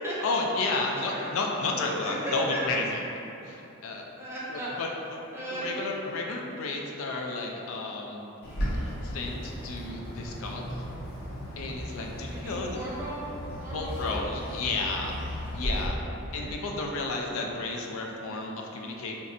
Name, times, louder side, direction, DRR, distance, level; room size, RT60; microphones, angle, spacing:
voice 1, 0.2-2.8 3.4-4.1 4.5-5.2 5.5-8.3 9.0-10.8 11.5-12.8 13.7-15.2 15.5-16.0 16.3-19.2, left 3 dB, 70° left, 0 dB, 0.4 m, -32 dB
voice 2, 0.8-1.4 1.7-2.9 4.1-4.7 5.3-5.7 12.3-13.3 13.6-14.2 14.5-15.1 15.5-15.8 16.2-16.5, right 1 dB, 10° right, -8 dB, 0.6 m, -36 dB
Bird, 8.4-15.9, equal, 45° left, 0.7 m, -35 dB
4.0 x 2.5 x 2.5 m, 2.9 s
head